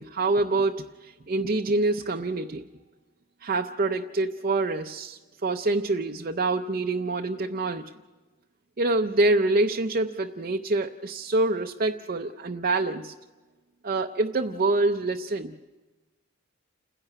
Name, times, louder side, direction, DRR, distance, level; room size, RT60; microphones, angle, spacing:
voice 1, 0.0-2.6 3.4-7.9 8.8-13.1 13.8-15.6, right 2 dB, 40° right, 3 dB, 0.6 m, -26 dB
29.0 x 10.5 x 9.0 m, 1.3 s
head